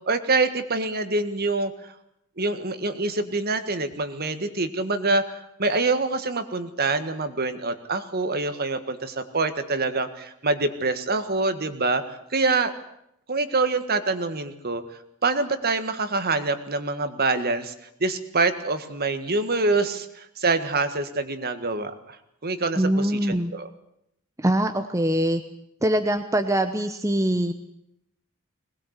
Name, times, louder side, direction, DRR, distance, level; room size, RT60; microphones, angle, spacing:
voice 1, 0.1-1.9 2.4-12.7 13.3-14.8 15.2-17.7 18.0-22.2 22.4-23.7, right 3 dB, 45° right, 10 dB, 1.7 m, -25 dB
voice 2, 22.8-23.5 24.4-25.4 25.8-27.5, right 1 dB, 15° right, 7 dB, 0.9 m, -23 dB
21.5 x 20.0 x 8.2 m, 0.77 s
head